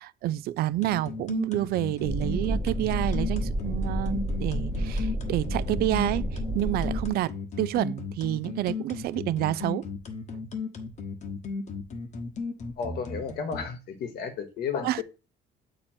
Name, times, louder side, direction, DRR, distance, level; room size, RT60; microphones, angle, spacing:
voice 1, 0.0-6.3 6.5-7.3 7.6-9.9 14.8-15.0, right 15 dB, 65° right, 0.4 m, -28 dB
sound 1, 0.8-13.6, left 4 dB, 45° left, 1.1 m, -35 dB
sound 2, 2.1-7.1, right 1 dB, 20° right, 0.8 m, -30 dB
voice 2, 12.8-15.0, left 6 dB, 65° left, 1.1 m, -33 dB
7.5 x 2.9 x 4.4 m
cardioid pair, 110°, 17 cm